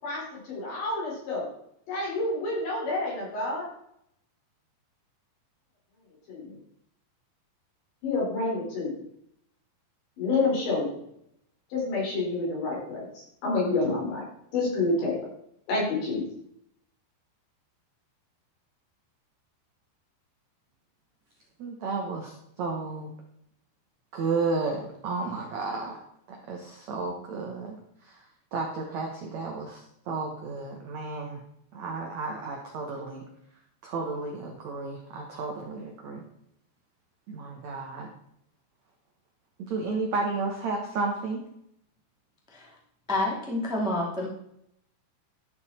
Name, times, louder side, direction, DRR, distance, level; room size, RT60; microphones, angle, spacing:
voice 1, 0.0-1.5 1.9-3.7 6.3-6.5 8.0-8.9 10.2-11.0 11.7-14.2 14.5-15.2 15.7-16.3, left 3 dB, 70° left, -5 dB, 7.0 m, -28 dB
voice 2, 21.6-23.1 24.1-26.0 26.3-31.4 31.7-33.2 33.8-36.3 37.3-38.1 39.6-41.4, right 3 dB, 90° right, 1 dB, 1.5 m, -32 dB
voice 3, 43.1-44.3, left 1 dB, ahead, -3 dB, 1.2 m, -28 dB
13.0 x 7.0 x 4.3 m, 0.74 s
omnidirectional pair, 5.3 m